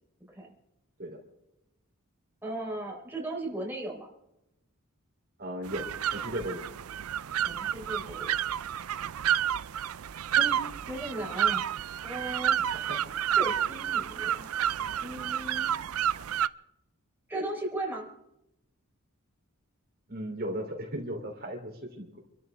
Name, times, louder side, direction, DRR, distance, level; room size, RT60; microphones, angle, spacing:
voice 1, 2.4-4.1 7.3-8.3 10.4-11.6 12.0-12.6 13.4-14.5 15.0-15.7 17.3-18.1, right 1 dB, 10° right, -2 dB, 4.0 m, -37 dB
voice 2, 5.4-6.6 12.7-13.0 20.1-22.2, equal, 45° right, 1 dB, 3.3 m, -36 dB
sound 1, 5.6-16.5, right 9 dB, 80° right, 0.5 m, -30 dB
27.5 x 13.5 x 3.5 m, 0.84 s
head